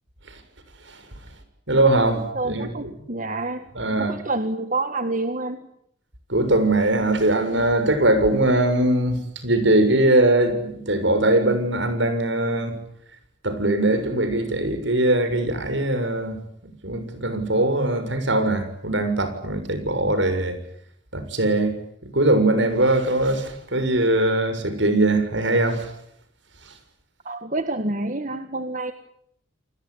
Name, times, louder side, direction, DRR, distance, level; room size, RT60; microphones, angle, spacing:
voice 1, 1.7-2.9 3.7-4.2 6.3-12.8 13.4-16.4 16.6-20.6 21.1-21.8 22.1-25.9, right 1 dB, 70° right, 10 dB, 6.8 m, -21 dB
voice 2, 2.4-3.7 4.0-5.6 27.3-28.9, right 2 dB, 40° right, 8 dB, 1.7 m, -28 dB
29.5 x 20.5 x 9.8 m, 0.73 s
head